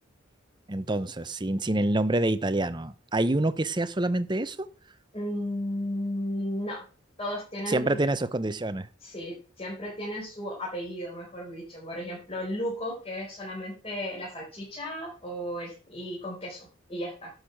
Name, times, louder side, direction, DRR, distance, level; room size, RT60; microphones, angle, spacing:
voice 1, 0.7-4.7 7.7-8.9, right 2 dB, 20° right, 13 dB, 0.7 m, -27 dB
voice 2, 5.1-6.8 7.2-8.0 9.0-17.3, equal, 30° left, -5 dB, 4.7 m, -34 dB
11.5 x 6.6 x 6.0 m, 0.36 s
head